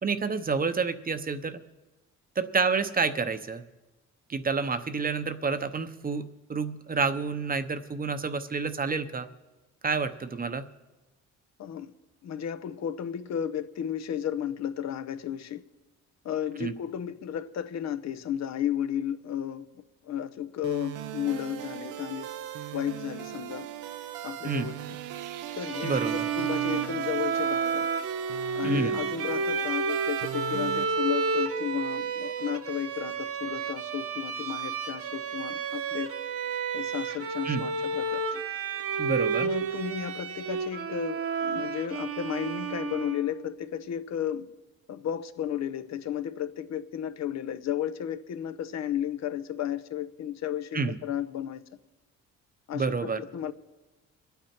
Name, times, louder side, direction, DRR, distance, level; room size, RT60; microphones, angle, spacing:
voice 1, 0.0-1.6 2.4-3.6 4.3-6.2 6.5-9.3 9.8-10.6 16.6-16.7 24.4-24.7 25.8-26.2 28.6-29.0 37.4-37.6 39.0-39.5 50.7-51.0 52.7-53.2, right 4 dB, 30° right, 0.8 m, -29 dB
voice 2, 11.6-11.9 12.2-15.6 16.2-19.7 20.0-22.3 22.7-23.7 24.2-24.8 25.5-27.9 28.5-36.1 36.7-38.4 39.4-44.5 44.9-51.6 52.7-53.5, left 10 dB, 60° left, 0.8 m, -33 dB
sound 1, 20.6-30.8, right 11 dB, 90° right, 0.8 m, -39 dB
Bowed string instrument, 25.6-43.4, right 5 dB, 50° right, 1.1 m, -31 dB
24.0 x 9.2 x 4.4 m
cardioid pair, 90°, 30 cm